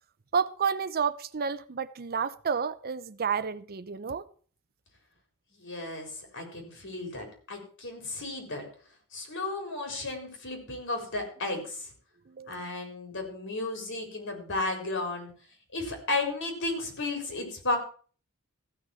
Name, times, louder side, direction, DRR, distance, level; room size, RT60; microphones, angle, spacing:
voice 1, 0.3-4.2 12.3-12.7, right 6 dB, 45° right, 0.7 m, -30 dB
voice 2, 5.5-8.6 9.1-11.9 12.5-15.3 15.7-17.8, left 2 dB, 60° left, 4.0 m, -34 dB
15.0 x 6.3 x 7.0 m
head